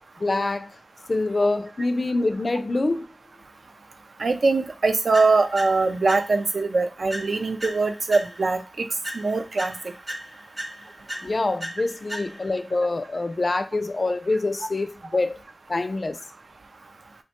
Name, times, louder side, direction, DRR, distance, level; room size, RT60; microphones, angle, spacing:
voice 1, 0.2-0.8 1.1-3.1 11.2-15.4 15.7-16.2, left 2 dB, 55° left, 0.3 m, -25 dB
voice 2, 4.2-8.9 9.1-9.7, right 3 dB, 80° right, 0.4 m, -22 dB
sound 1, 5.1-6.6 7.1-8.6 9.0-12.6, equal, 30° right, 0.7 m, -37 dB
3.0 x 2.1 x 2.8 m
wide cardioid pair, 60°, 0 cm